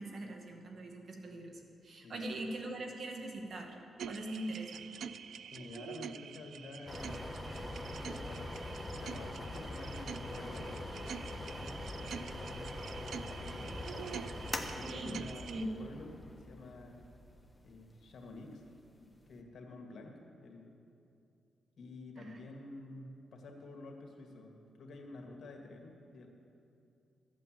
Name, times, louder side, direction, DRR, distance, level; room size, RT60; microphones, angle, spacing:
voice 1, 0.0-3.8 4.1-4.9 14.8-15.7 22.2-22.4, right 1 dB, 60° right, 2 dB, 1.9 m, -42 dB
sound 1, 4.0-15.6, right 7 dB, 75° right, 0.4 m, -47 dB
voice 2, 5.5-13.8 14.7-17.0 17.6-20.8 21.8-26.3, left 2 dB, 65° left, 2 dB, 1.9 m, -50 dB
sound 2, 6.9-19.3, left 1 dB, 15° left, 1.2 m, -43 dB
14.0 x 8.3 x 7.7 m, 2.6 s
cardioid pair, 85°, 0 cm